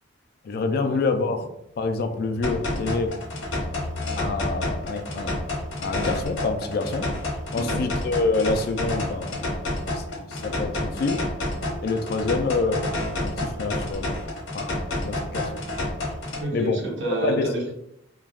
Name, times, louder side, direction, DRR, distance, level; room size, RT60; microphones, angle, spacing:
voice 1, 0.4-1.4 1.8-3.1 4.2-5.4 5.8-7.0 7.5-9.5 9.9-11.2 11.8-12.9 13.2-14.1 14.5-15.6 16.5-16.8 17.2-17.5, left 3 dB, 50° left, 6 dB, 0.3 m, -27 dB
sound 1, 1.6-11.2 11.5-11.6 11.9-12.3, left 2 dB, 20° right, 1.0 m, -42 dB
sound 2, 2.4-16.4, left 1 dB, 80° left, 1.0 m, -29 dB
voice 2, 7.5-7.9 16.4-17.7, right 1 dB, 65° right, -1 dB, 0.8 m, -29 dB
sound 3, 8.2-14.2, equal, ahead, 0.6 m, -46 dB
3.3 x 2.2 x 2.3 m, 0.79 s
head